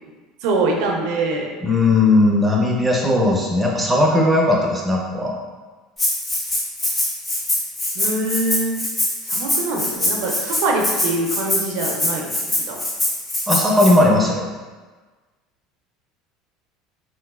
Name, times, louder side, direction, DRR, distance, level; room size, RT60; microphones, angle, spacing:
voice 1, 0.4-1.5 7.9-8.8 9.2-12.8, right 2 dB, 75° right, 0 dB, 0.5 m, -24 dB
voice 2, 1.6-5.3 13.5-14.5, left 2 dB, 10° right, -2 dB, 0.6 m, -17 dB
Rattle (instrument), 6.0-13.9, left 1 dB, 25° left, 0.7 m, -23 dB
3.2 x 3.0 x 2.3 m, 1.3 s
supercardioid pair, 115°, 0 cm